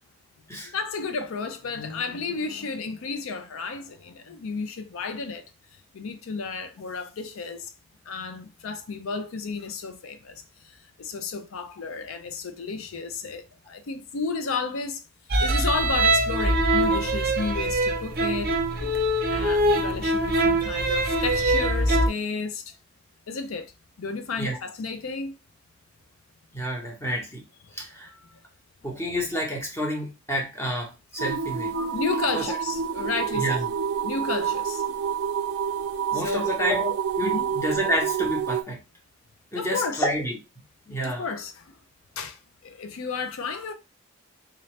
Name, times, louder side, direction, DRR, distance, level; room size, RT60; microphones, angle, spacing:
voice 1, 0.7-5.4 5.9-7.7 8.1-15.0 15.4-18.6 19.3-22.8 23.3-23.7 24.0-25.4 27.6-27.8 28.1-28.4 28.8-28.9 31.3-31.4 31.9-33.6 34.0-34.9 36.1-36.6 37.2-37.5 39.5-40.1 41.0-41.8 42.2-43.7, left 4 dB, 80° left, 0.5 m, -32 dB
sound 1, 15.3-22.1, right 1 dB, 45° right, 0.6 m, -23 dB
voice 2, 26.5-27.4 27.7-28.1 28.8-31.9 32.3-32.5 33.3-33.7 36.1-38.8 39.5-40.4 40.9-41.3, equal, 15° left, 1.1 m, -29 dB
sound 2, 31.2-38.6, right 7 dB, 85° right, 0.4 m, -28 dB
3.9 x 2.8 x 3.1 m
head